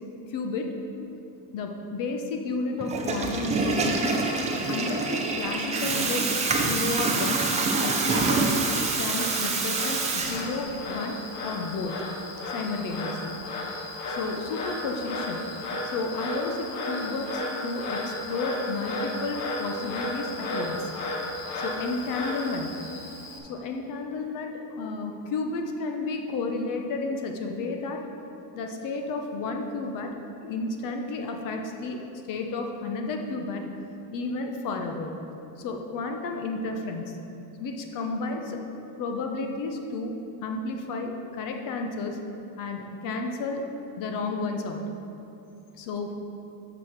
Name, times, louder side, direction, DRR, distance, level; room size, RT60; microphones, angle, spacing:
voice 1, 0.3-0.7 1.5-4.2 4.7-7.4 7.8-8.5 9.0-12.0 12.5-13.4 14.1-15.4 15.8-20.9 21.5-22.7 23.5-28.0 28.5-32.0 32.3-33.7 34.1-35.1 35.6-37.2 37.6-38.6 39.0-40.2 40.4-42.2 42.6-43.6 44.0-44.8 45.7-46.1, left 3 dB, 45° left, 3 dB, 0.8 m, -32 dB
Water tap faucet / Toilet flush, 2.8-10.8, right 3 dB, 15° right, 0.4 m, -26 dB
Frog, 3.5-23.4, left 2 dB, 90° left, 1.4 m, -35 dB
6.2 x 6.1 x 6.0 m, 2.8 s
cardioid pair, 150°, 46 cm